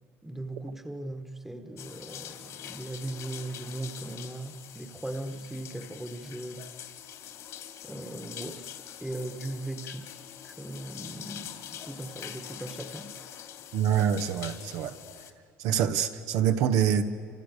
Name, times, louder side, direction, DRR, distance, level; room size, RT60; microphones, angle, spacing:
voice 1, 0.2-6.7 7.8-8.7 9.0-10.1 10.4-13.1, right 2 dB, 5° right, 1.6 m, -38 dB
sound 1, 1.8-15.3, left 10 dB, 60° left, 2.8 m, -44 dB
voice 2, 13.7-14.9 15.6-17.0, right 9 dB, 70° right, 1.7 m, -25 dB
28.0 x 27.5 x 6.8 m
cardioid pair, 120°, 6 cm